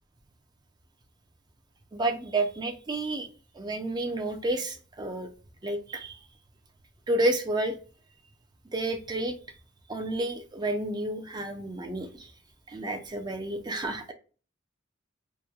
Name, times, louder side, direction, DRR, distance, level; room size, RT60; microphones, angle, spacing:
voice 1, 1.9-3.3 3.6-5.3 5.6-6.2 7.1-7.8 8.7-9.3 9.9-12.3 12.7-14.1, right 2 dB, 20° right, 0.4 m, -30 dB
3.0 x 2.1 x 2.2 m
head